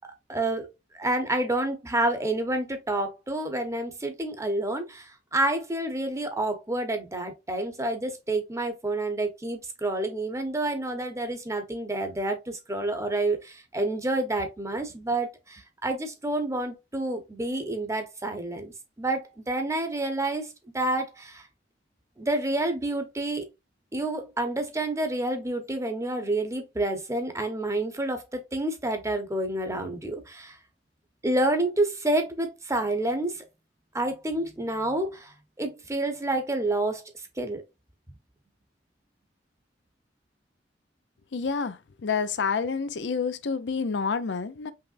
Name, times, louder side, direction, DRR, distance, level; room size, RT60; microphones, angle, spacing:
voice 1, 0.3-0.7 1.0-5.0 5.3-18.7 19.0-21.4 22.2-23.5 23.9-30.5 31.2-33.4 33.9-35.3 35.6-37.0 37.4-37.6, right 2 dB, 15° right, 0.9 m, -28 dB
voice 2, 41.3-44.7, left 5 dB, 80° left, 0.5 m, -28 dB
5.6 x 3.3 x 2.5 m
head